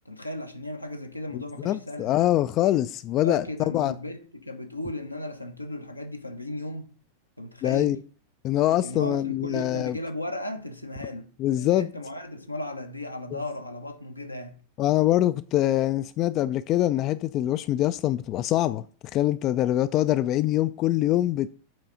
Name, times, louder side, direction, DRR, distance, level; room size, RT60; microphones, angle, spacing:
voice 1, 0.0-2.3 3.2-6.9 7.4-8.0 8.8-14.5, left 1 dB, 85° left, 0.8 m, -36 dB
voice 2, 1.3-3.9 7.6-8.0 8.4-10.0 11.4-11.9 13.3-13.4 14.8-18.8 19.1-21.5, left 13 dB, 35° left, 0.3 m, -24 dB
7.8 x 4.1 x 5.5 m
figure-of-eight pair, 90°, 0 cm